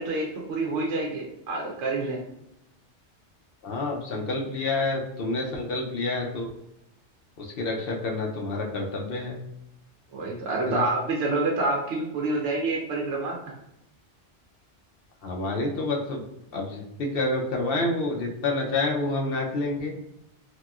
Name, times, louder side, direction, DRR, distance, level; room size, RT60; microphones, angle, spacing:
voice 1, 0.0-2.2 10.1-13.6, right 2 dB, 80° right, -2 dB, 1.0 m, -28 dB
voice 2, 3.6-6.5 7.4-9.4 10.7-10.8 15.2-16.2 16.5-19.9, left 2 dB, 65° left, 0 dB, 0.7 m, -28 dB
2.9 x 2.8 x 2.3 m, 0.83 s
omnidirectional pair, 1.2 m